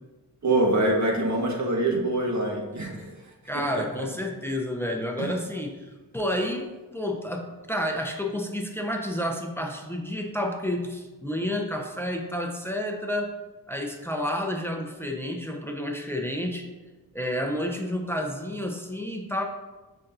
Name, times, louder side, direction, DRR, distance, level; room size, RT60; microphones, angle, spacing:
voice 1, 0.4-3.1 3.7-3.8 5.2-5.3, right 2 dB, 45° right, 0 dB, 1.5 m, -24 dB
voice 2, 3.4-6.7 6.9-13.3 13.7-16.7 17.1-19.4, left 1 dB, 5° left, 2 dB, 0.7 m, -30 dB
6.4 x 5.5 x 2.7 m, 1.2 s
cardioid pair, 50°, 40 cm